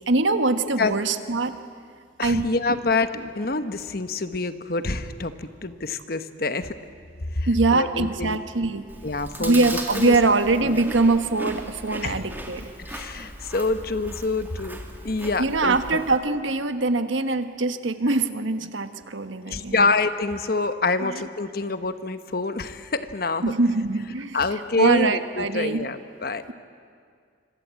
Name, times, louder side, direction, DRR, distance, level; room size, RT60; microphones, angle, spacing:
voice 1, 0.1-1.5 2.2-2.8 7.5-8.9 9.4-12.7 15.4-19.9 21.0-21.2 23.4-24.4 24.8-25.8, right 3 dB, 85° right, 9 dB, 1.4 m, -23 dB
voice 2, 2.2-6.7 7.3-8.4 9.0-9.7 10.0-10.1 10.6-10.8 12.0-12.2 12.8-14.8 15.0-16.0 19.5-23.5 24.3-26.4, left 3 dB, 50° left, 10 dB, 1.1 m, -26 dB
Chewing mastication, 8.9-16.2, right 1 dB, 10° right, 2.3 m, -37 dB
26.0 x 25.0 x 8.3 m, 2.2 s
head